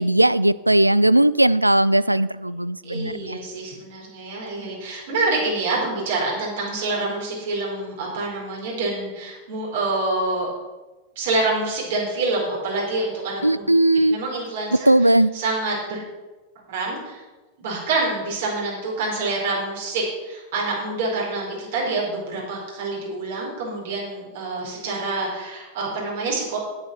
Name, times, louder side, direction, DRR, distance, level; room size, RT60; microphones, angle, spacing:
voice 1, 0.0-3.4 13.4-14.2 14.9-15.3, right 1 dB, 85° right, 18 dB, 0.3 m, -18 dB
voice 2, 2.8-10.5 11.2-13.7 14.1-16.0 16.7-17.2 17.6-26.6, right 3 dB, 55° right, -3 dB, 4.6 m, -27 dB
10.5 x 8.8 x 6.2 m, 1.2 s
figure-of-eight pair, 90°, 0 cm